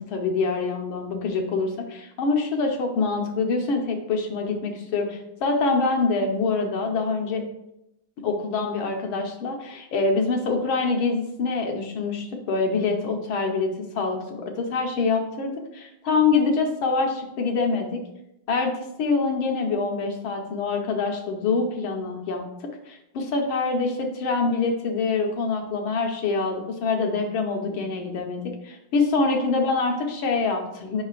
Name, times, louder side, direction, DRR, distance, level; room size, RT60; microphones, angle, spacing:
voice 1, 0.0-7.4 8.2-18.0 18.5-18.7 19.0-22.4 22.9-31.0, left 4 dB, 85° left, 3 dB, 1.8 m, -25 dB
7.7 x 5.5 x 2.5 m, 0.83 s
omnidirectional pair, 2.2 m